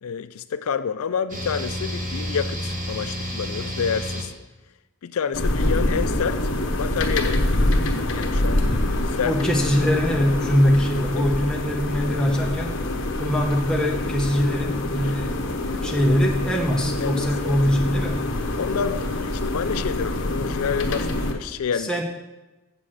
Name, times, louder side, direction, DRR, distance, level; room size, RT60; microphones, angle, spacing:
voice 1, 0.0-4.3 5.0-6.5 6.8-7.4 8.1-8.7 9.1-9.4 11.2-11.3 17.0-17.6 18.6-22.0, left 6 dB, 75° left, 12 dB, 0.4 m, -28 dB
sound 1, 1.3-4.2, equal, 35° right, 1.5 m, -30 dB
sound 2, 5.3-21.3, left 1 dB, 55° left, 1.1 m, -25 dB
voice 2, 9.2-12.8 13.2-18.3 21.7-22.0, equal, 5° left, 0 dB, 0.9 m, -22 dB
7.5 x 6.1 x 7.7 m, 1.1 s
head